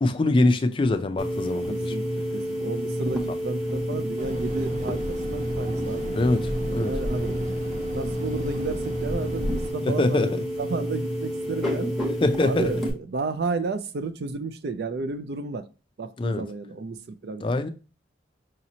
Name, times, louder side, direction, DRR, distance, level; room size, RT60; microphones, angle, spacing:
voice 1, 0.0-1.9 6.1-6.9 9.9-10.4 12.2-12.7 16.2-16.4 17.4-17.7, left 2 dB, 30° left, 0.3 m, -23 dB
sound 1, 1.2-12.9, equal, ahead, 0.9 m, -29 dB
voice 2, 1.7-6.1 6.6-7.5 7.9-11.9 12.4-15.7 16.0-17.4, right 4 dB, 60° right, 0.4 m, -32 dB
sound 2, 4.2-9.7, right 1 dB, 40° right, 0.8 m, -34 dB
4.9 x 2.9 x 2.7 m
head